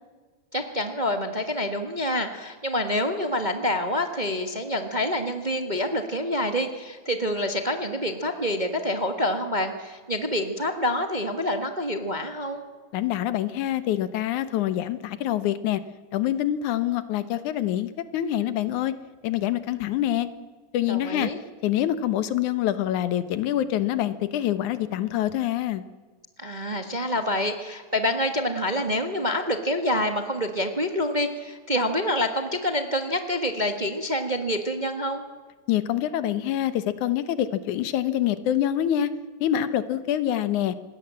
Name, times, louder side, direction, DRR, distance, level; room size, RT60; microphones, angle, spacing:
voice 1, 0.5-12.6 20.9-21.4 26.4-35.2, left 1 dB, 25° right, 6 dB, 1.0 m, -27 dB
voice 2, 12.9-15.8 16.1-18.9 19.2-20.3 20.7-21.3 21.6-25.8 35.7-39.1 39.4-40.8, left 12 dB, 90° left, 13 dB, 2.5 m, -25 dB
26.0 x 20.5 x 7.6 m, 1.4 s
omnidirectional pair, 3.3 m